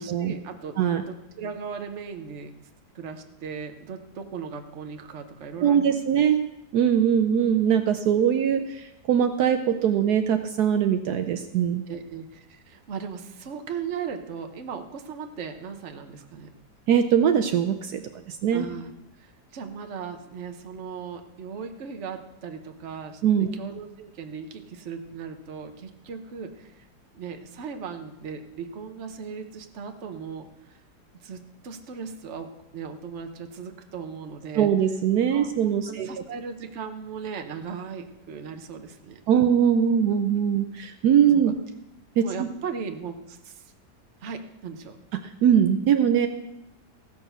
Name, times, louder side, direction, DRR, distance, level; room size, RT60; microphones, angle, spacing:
voice 1, 0.0-0.8 1.1-2.5 2.9-6.2 11.9-16.5 18.5-18.9 19.2-23.2 23.5-26.9 27.1-30.8 31.2-34.7 35.3-39.2 41.3-41.4 42.2-43.7 44.2-45.0, right 6 dB, 50° right, 6 dB, 1.2 m, -37 dB
voice 2, 5.6-6.4 6.7-11.8 16.9-18.0 18.3-18.7 23.2-23.5 34.6-36.1 39.3-41.5 42.2-42.5 45.1-46.3, right 8 dB, 75° right, 7 dB, 1.2 m, -21 dB
16.0 x 6.8 x 6.7 m, 0.90 s
omnidirectional pair, 1.8 m